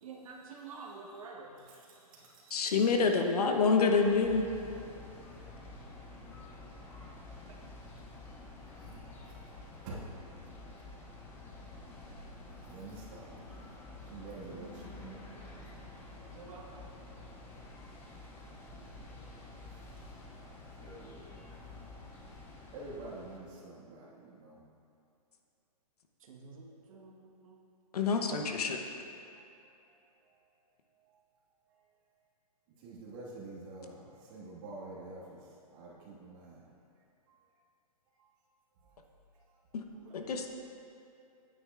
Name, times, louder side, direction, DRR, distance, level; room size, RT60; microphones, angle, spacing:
voice 1, 0.0-1.6 16.3-16.9 26.2-27.6 40.0-40.1, right 4 dB, 60° right, -1 dB, 1.3 m, -48 dB
voice 2, 1.7-2.6 8.8-9.0 9.8-10.0 12.7-13.7 14.1-15.1 20.8-21.2 22.7-24.6 32.8-35.4 35.7-36.6, right 2 dB, 35° right, -5 dB, 1.8 m, -47 dB
voice 3, 2.5-4.4 27.9-28.8 39.7-39.8 40.1-40.5, left 4 dB, 75° left, 3 dB, 0.9 m, -27 dB
sound 1, 4.0-23.4, left 2 dB, 10° left, 0.5 m, -49 dB
9.6 x 8.9 x 2.5 m, 2.7 s
hypercardioid pair, 155°, 20 cm